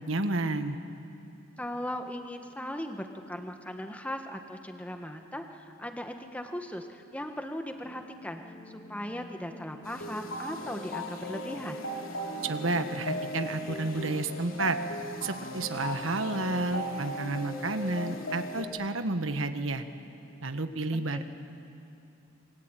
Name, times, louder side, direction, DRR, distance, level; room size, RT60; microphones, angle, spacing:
voice 1, 0.1-0.8 12.4-14.8 15.2-19.8 20.4-21.2, right 2 dB, 75° right, 8 dB, 1.4 m, -31 dB
voice 2, 1.6-11.8 20.9-21.2, left 1 dB, 5° left, 5 dB, 1.6 m, -38 dB
sound 1, 7.8-15.9, left 1 dB, 45° left, 4.3 m, -49 dB
sound 2, 9.8-18.6, equal, 90° left, 3.0 m, -37 dB
27.0 x 23.5 x 9.1 m, 2.8 s
head